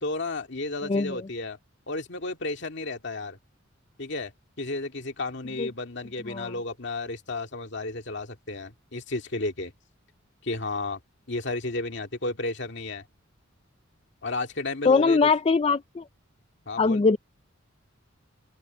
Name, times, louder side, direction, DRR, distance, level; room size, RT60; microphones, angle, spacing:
voice 1, 0.0-1.6 1.9-3.4 4.0-4.3 4.6-9.7 10.4-11.0 11.3-13.0 14.2-15.3 16.7-17.0, left 2 dB, 60° left, 2.2 m, -32 dB
voice 2, 0.8-1.2 5.6-5.7 6.3-6.5 14.8-16.0 16.8-17.2, left 4 dB, 30° left, 0.3 m, -22 dB
open air
head